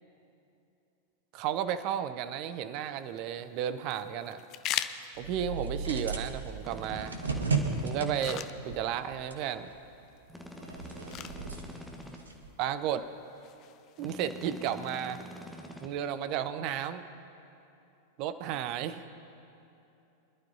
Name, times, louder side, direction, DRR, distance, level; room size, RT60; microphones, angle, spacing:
voice 1, 1.3-4.4 5.2-7.1 7.8-9.7 12.6-13.1 14.0-15.2 15.8-17.0 18.2-19.0, right 9 dB, 40° right, 11 dB, 0.7 m, -33 dB
sound 1, 2.8-15.8, left 12 dB, 35° left, 0.5 m, -44 dB
sound 2, 5.2-10.1 10.4-12.5, right 4 dB, 75° right, 1.1 m, -35 dB
sound 3, 6.6-8.5 10.3-12.2 14.0-15.9, left 1 dB, ahead, 1.2 m, -46 dB
25.0 x 11.5 x 2.8 m, 2.8 s
figure-of-eight pair, 90°, 0 cm